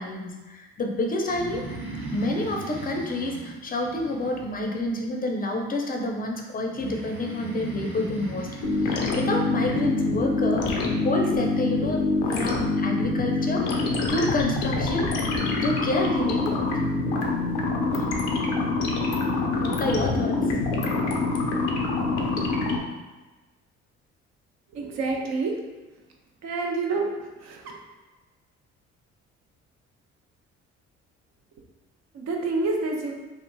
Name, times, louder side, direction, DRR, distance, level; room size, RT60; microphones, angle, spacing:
voice 1, 0.0-1.6 2.1-8.5 8.8-12.0 12.3-15.3 15.6-16.9 17.9-18.1 18.5-18.6 18.9-19.3 19.6-20.5, left 2 dB, 25° left, 1 dB, 0.5 m, -29 dB
Breathing, 1.2-4.9 6.7-9.8, right 3 dB, 75° right, 0.9 m, -37 dB
sound 1, 8.6-22.8, left 3 dB, 85° left, 0.5 m, -25 dB
voice 2, 24.7-25.5 26.4-27.1 27.4-27.7 32.1-33.1, right 3 dB, 55° right, 1 dB, 0.6 m, -27 dB
2.9 x 2.4 x 2.2 m, 1.2 s
hypercardioid pair, 55°, 34 cm